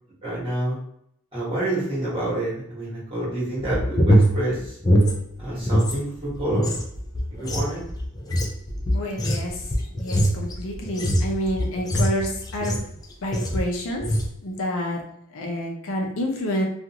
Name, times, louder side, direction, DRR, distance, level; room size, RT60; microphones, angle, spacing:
voice 1, 0.2-0.8 1.3-4.8 5.4-6.7 7.3-7.8, right 1 dB, 25° right, -8 dB, 1.2 m, -28 dB
sound 1, 3.6-6.0 6.3-13.0 13.3-13.7 14.0-14.3, equal, 15° left, 0.3 m, -22 dB
voice 2, 8.9-9.7 10.0-12.8 13.2-16.7, equal, 65° left, 0 dB, 0.5 m, -29 dB
2.5 x 2.4 x 2.8 m, 0.70 s
head